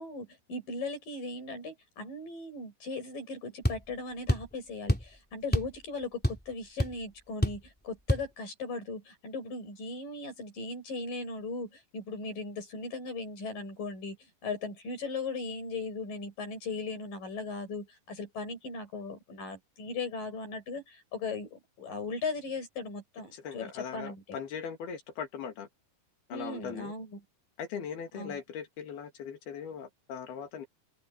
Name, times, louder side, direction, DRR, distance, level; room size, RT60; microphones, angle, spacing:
voice 1, 0.0-14.2 14.4-24.4 26.3-27.2 28.1-28.4, left 3 dB, 60° left, 9.2 m, -38 dB
sound 1, 3.6-3.8 4.3-4.5 4.9-5.1 5.5-5.8 6.0-6.5 6.8-6.9 7.4-7.7 8.1-8.3, equal, 5° left, 2.5 m, -27 dB
voice 2, 23.3-25.7 26.3-26.9 27.6-30.7, left 7 dB, 80° left, 4.6 m, -39 dB
open air
omnidirectional pair, 4.4 m